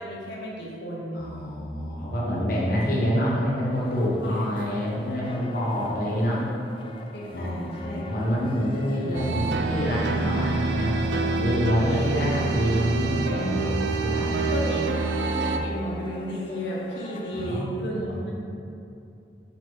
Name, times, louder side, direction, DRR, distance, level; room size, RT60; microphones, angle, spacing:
voice 1, 0.0-1.3 4.2-4.4 5.1-5.3 7.1-8.0 11.9-12.1 14.5-18.3, equal, 75° left, -4 dB, 1.2 m, -34 dB
voice 2, 1.1-6.4 7.3-13.7 14.0-14.5 17.3-17.7 18.0-18.3, equal, 50° left, -6 dB, 1.2 m, -27 dB
sound 1, 3.7-17.6, left 2 dB, 30° left, 0.4 m, -43 dB
sound 2, 9.1-15.6, right 4 dB, 80° right, 0.5 m, -27 dB
6.9 x 4.9 x 4.0 m, 2.7 s
head